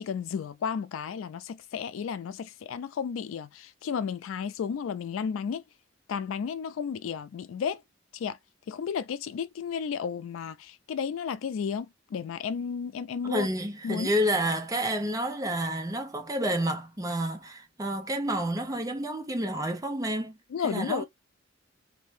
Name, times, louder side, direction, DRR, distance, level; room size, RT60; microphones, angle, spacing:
voice 1, 0.0-5.6 6.1-7.8 8.1-8.4 8.7-13.5 13.8-14.1 20.5-21.0, left 7 dB, 85° left, 0.3 m, -33 dB
voice 2, 13.2-20.4 20.6-21.0, right 1 dB, 20° right, 0.5 m, -29 dB
2.5 x 2.1 x 3.2 m
head